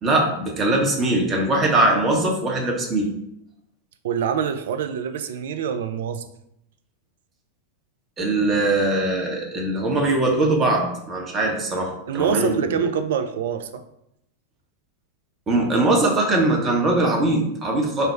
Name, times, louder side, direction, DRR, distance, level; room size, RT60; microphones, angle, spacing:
voice 1, 0.0-3.1 8.2-12.5 15.5-18.1, right 2 dB, 25° right, -1 dB, 0.7 m, -21 dB
voice 2, 4.0-6.2 12.1-13.8, right 7 dB, 60° right, 9 dB, 0.3 m, -25 dB
3.3 x 2.1 x 4.2 m, 0.79 s
figure-of-eight pair, 90°, 0 cm